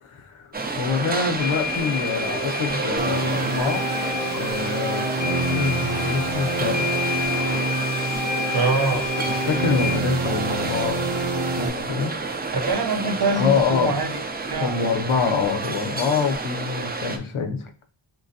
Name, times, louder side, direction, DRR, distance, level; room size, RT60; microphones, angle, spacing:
voice 1, 0.0-3.8 4.3-7.0 9.3-11.0 11.6-12.2 13.4-13.9 14.6-17.7, left 5 dB, 90° left, 7 dB, 0.7 m, -26 dB
sound 1, 0.5-17.2, right 3 dB, 20° right, 0.4 m, -30 dB
sound 2, 1.4-10.0, left 6 dB, 40° left, 0.6 m, -31 dB
sound 3, 3.0-11.7, right 2 dB, 85° right, 0.8 m, -27 dB
voice 2, 8.5-9.0 12.5-14.7, right 3 dB, 50° right, 5 dB, 0.7 m, -24 dB
3.8 x 2.9 x 2.7 m, 0.40 s
wide cardioid pair, 95°, 49 cm